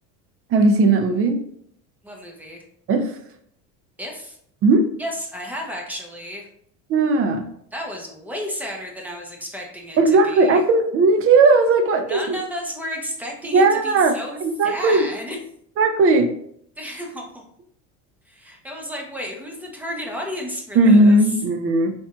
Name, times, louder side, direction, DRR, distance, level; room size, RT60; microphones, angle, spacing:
voice 1, 0.5-1.4 2.9-3.1 4.6-4.9 6.9-7.4 10.0-12.2 13.5-14.1 14.4-15.1 15.8-16.3 20.8-21.9, right 3 dB, 40° right, 7 dB, 0.6 m, -16 dB
voice 2, 2.0-2.6 4.0-4.4 5.0-6.5 7.7-10.6 12.1-15.4 16.8-17.4 18.3-21.2, equal, 5° right, 0 dB, 0.8 m, -33 dB
4.3 x 3.4 x 2.4 m, 0.67 s
cardioid pair, 125°, 35 cm